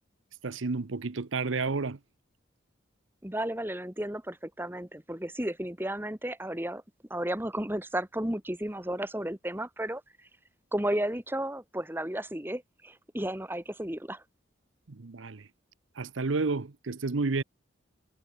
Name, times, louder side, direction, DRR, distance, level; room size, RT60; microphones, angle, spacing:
voice 1, 0.4-2.0 14.9-15.5 16.0-17.4, right 3 dB, 85° right, 0.8 m, -31 dB
voice 2, 3.2-6.8 7.1-10.0 10.7-14.2, right 1 dB, 10° right, 1.7 m, -33 dB
head